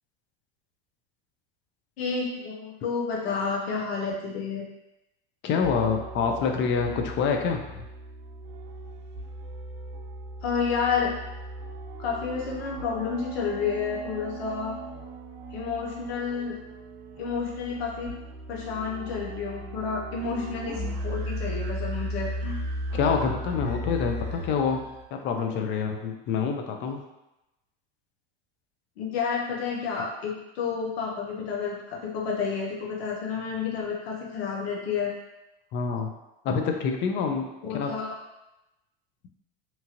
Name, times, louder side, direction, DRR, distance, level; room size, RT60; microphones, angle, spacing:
voice 1, 2.0-4.7 10.4-11.1 12.0-14.8 15.5-16.6 17.2-18.1 18.5-22.6 29.0-35.1 37.6-38.1, left 5 dB, 85° left, -2 dB, 0.7 m, -30 dB
voice 2, 5.4-7.8 22.9-27.0 35.7-36.1 36.4-37.9, left 5 dB, 40° left, 3 dB, 0.5 m, -27 dB
sound 1, 5.6-25.0, right 1 dB, 60° right, 0.6 m, -37 dB
2.9 x 2.4 x 2.8 m, 0.95 s
supercardioid pair, 110°, 30 cm